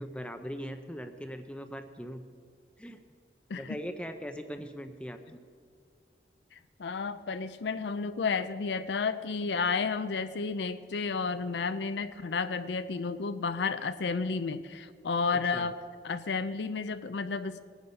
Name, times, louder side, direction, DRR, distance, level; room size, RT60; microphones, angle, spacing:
voice 1, 0.0-2.2 2.8-3.0 3.5-5.4 15.5-15.7, equal, 5° left, 7 dB, 0.5 m, -40 dB
voice 2, 6.8-15.8 16.0-17.6, left 4 dB, 80° left, 11 dB, 0.5 m, -31 dB
19.5 x 9.6 x 5.5 m, 2.2 s
head